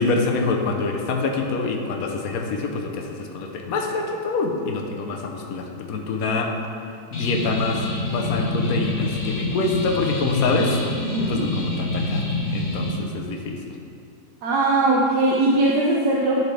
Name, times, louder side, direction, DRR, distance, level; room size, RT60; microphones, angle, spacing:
voice 1, 0.0-6.5 7.1-10.8 11.3-13.6, left 3 dB, 65° left, 2 dB, 1.2 m, -26 dB
sound 1, 7.1-12.9, left 1 dB, 45° left, 1.2 m, -26 dB
voice 2, 11.1-11.5 14.4-16.4, right 2 dB, 80° right, -4 dB, 1.3 m, -20 dB
11.0 x 4.6 x 3.3 m, 2.5 s
omnidirectional pair, 1.8 m